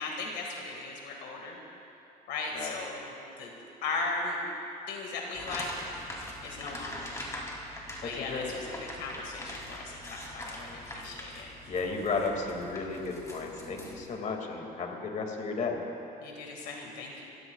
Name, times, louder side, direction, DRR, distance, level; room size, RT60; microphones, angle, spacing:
voice 1, 0.0-1.6 2.3-3.5 3.8-4.4 4.9-5.7 6.4-7.1 8.0-11.5 16.2-17.3, left 3 dB, 85° left, 0 dB, 2.0 m, -37 dB
sound 1, 5.3-14.1, left 1 dB, 20° left, 3.0 m, -43 dB
voice 2, 8.0-8.5 11.7-15.8, left 4 dB, 45° left, 1 dB, 2.3 m, -33 dB
28.5 x 15.5 x 2.4 m, 2.9 s
cardioid pair, 110°, 17 cm